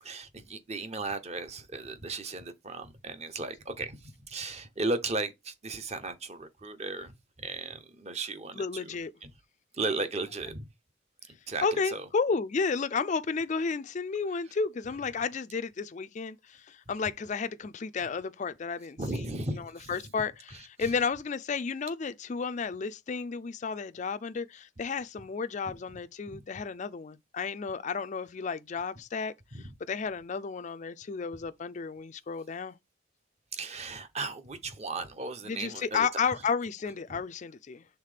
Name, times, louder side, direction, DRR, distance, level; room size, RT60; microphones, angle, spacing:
voice 1, 0.0-9.0 9.2-9.3 9.8-10.6 11.5-12.0 19.0-19.9 26.3-26.4 29.5-29.7 33.5-36.1 37.1-37.2, right 3 dB, 30° right, 0.8 m, -36 dB
voice 2, 8.5-9.1 11.6-32.8 35.5-37.8, left 5 dB, 35° left, 0.4 m, -32 dB
5.8 x 3.6 x 4.9 m
head